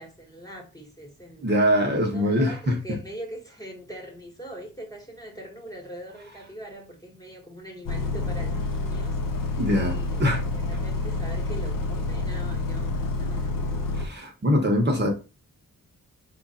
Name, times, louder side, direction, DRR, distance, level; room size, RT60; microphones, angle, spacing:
voice 1, 0.0-1.5 2.1-9.2 9.9-13.6, right 1 dB, 10° left, 1.3 m, -42 dB
voice 2, 1.4-2.8 9.6-10.4 13.9-15.1, equal, 30° right, 1.0 m, -23 dB
Bus, 7.9-14.1, left 2 dB, 75° left, 0.8 m, -28 dB
4.6 x 2.5 x 4.2 m
wide cardioid pair, 155°, 33 cm